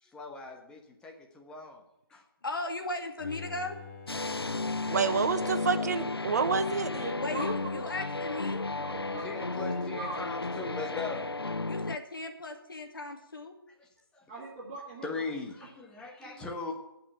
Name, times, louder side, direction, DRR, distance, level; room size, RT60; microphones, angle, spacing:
voice 1, 0.0-1.8 2.1-2.2 5.5-6.0 7.3-7.4 9.2-11.3 13.8-13.9 14.1-14.2 15.0-16.7, left 3 dB, 5° left, 1 dB, 1.4 m, -40 dB
voice 2, 2.4-3.8 7.2-8.6 11.7-13.5, left 2 dB, 65° left, 5 dB, 2.4 m, -36 dB
Bowed string instrument, 3.2-6.3 6.7-6.8, left 5 dB, 35° left, 2.7 m, -48 dB
sound 1, 4.1-12.0, left 3 dB, 90° left, 0.5 m, -33 dB
voice 3, 4.9-7.1, right 5 dB, 45° right, 11 dB, 0.9 m, -28 dB
voice 4, 7.0-7.4 7.7-7.9 8.3-8.4 8.8-9.4 10.0-10.2 14.3-15.2 16.2-16.3, right 3 dB, 25° right, -2 dB, 2.4 m, -41 dB
15.0 x 5.9 x 8.9 m, 0.87 s
figure-of-eight pair, 145°, 12 cm